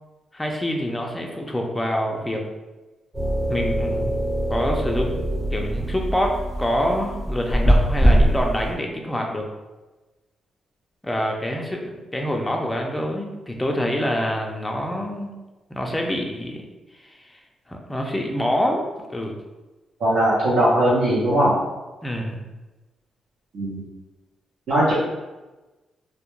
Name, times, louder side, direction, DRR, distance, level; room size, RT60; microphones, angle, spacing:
voice 1, 0.3-2.4 3.5-4.2 4.5-5.2 5.5-9.5 11.0-15.4 15.7-16.6 17.0-17.4 17.7-18.8 19.1-19.3 22.0-22.4, equal, 10° left, 0 dB, 0.3 m, -26 dB
sound 1, 3.1-8.7, equal, 25° right, 1.1 m, -22 dB
voice 2, 20.0-21.6 23.5-23.8 24.7-24.9, right 1 dB, 75° right, -9 dB, 0.6 m, -19 dB
2.1 x 2.1 x 3.0 m, 1.1 s
cardioid pair, 110°, 0 cm